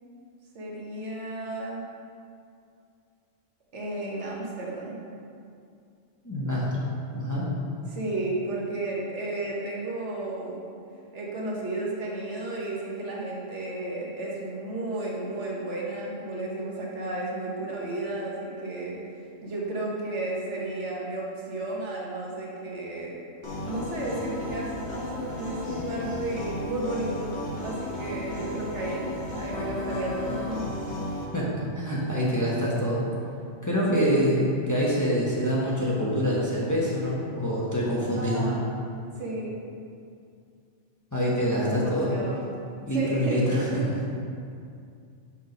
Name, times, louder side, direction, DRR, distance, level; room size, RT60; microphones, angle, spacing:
voice 1, 0.5-1.8 3.7-5.0 7.9-10.7 11.1-19.0 19.4-23.2 23.6-30.6 33.9-34.3 38.1-38.8 39.2-39.6 41.7-42.4 42.9-44.0, right 2 dB, 70° right, -4 dB, 1.4 m, -33 dB
voice 2, 6.2-6.8 7.1-7.5 31.3-33.0 33.6-38.5 41.1-42.2 42.9-43.9, equal, 15° left, -6 dB, 1.0 m, -26 dB
sound 1, 23.4-31.3, left 1 dB, 35° left, 1.4 m, -34 dB
5.7 x 4.5 x 5.3 m, 2.4 s
omnidirectional pair, 1.3 m